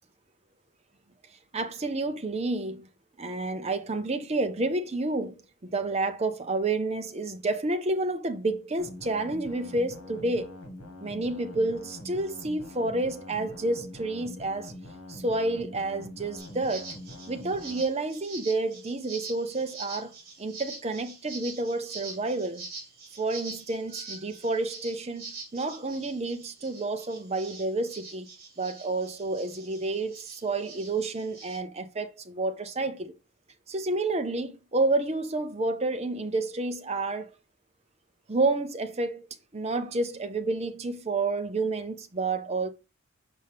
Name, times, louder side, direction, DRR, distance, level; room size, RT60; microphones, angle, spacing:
voice 1, 1.5-2.8 3.2-5.3 5.6-10.6 11.0-14.7 15.1-16.9 17.3-20.1 20.4-22.6 23.2-25.2 25.5-28.3 28.6-33.1 33.7-37.3 38.3-39.3 39.5-42.7, right 2 dB, 30° right, 0.6 m, -29 dB
sound 1, 8.8-17.8, left 1 dB, 80° left, 1.9 m, -44 dB
sound 2, 16.4-31.6, right 3 dB, 45° right, 2.6 m, -44 dB
5.5 x 5.3 x 3.4 m
head